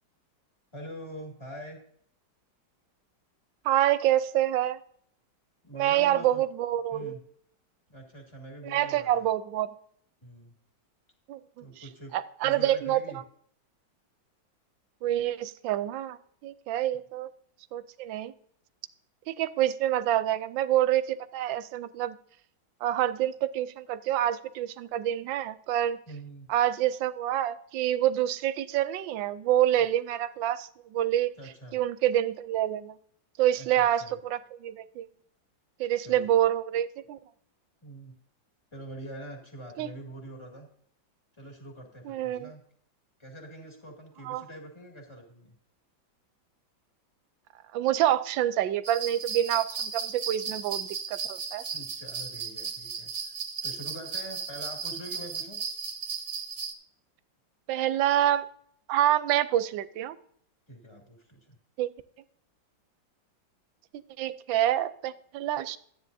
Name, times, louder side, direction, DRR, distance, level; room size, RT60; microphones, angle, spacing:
voice 1, 0.7-1.8 5.6-6.4 6.9-7.2 7.9-9.3 10.2-10.6 11.6-13.2 26.1-26.5 31.4-31.8 33.5-34.1 36.0-36.3 37.8-38.2 38.7-40.7 41.4-42.6 43.2-45.6 51.7-53.3 53.6-55.6 60.7-61.6, right 1 dB, 15° left, 0 dB, 2.1 m, -44 dB
voice 2, 3.6-4.8 5.7-7.2 8.6-9.7 11.3-11.8 12.1-13.0 15.0-17.3 17.7-18.3 19.3-22.2 22.8-26.0 26.5-31.3 31.7-32.9 33.4-35.1 35.8-37.2 39.8-39.9 42.0-42.5 44.2-44.4 47.7-51.6 57.7-58.5 58.9-60.2 61.8-61.9 64.2-65.8, right 12 dB, 80° right, 14 dB, 1.3 m, -27 dB
sound 1, 48.8-56.7, right 6 dB, 45° right, 1.3 m, -35 dB
13.0 x 9.8 x 2.7 m, 0.64 s
omnidirectional pair, 2.1 m